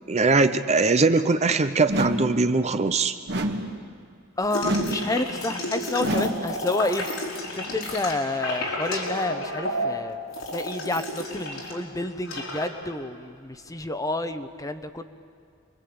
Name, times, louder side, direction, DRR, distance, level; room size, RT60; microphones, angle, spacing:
voice 1, 0.1-3.1, right 3 dB, 30° right, 10 dB, 0.7 m, -21 dB
sound 1, 1.9-2.4 3.3-3.8 4.6-5.1 6.0-6.5, right 1 dB, 55° right, 1.9 m, -28 dB
voice 2, 4.4-7.1 7.5-10.2 10.5-15.0, left 2 dB, 15° left, 9 dB, 1.0 m, -29 dB
sound 2, 4.5-11.8 12.0-12.7, left 1 dB, 85° left, 5.1 m, -31 dB
28.0 x 22.5 x 8.7 m, 2.3 s
head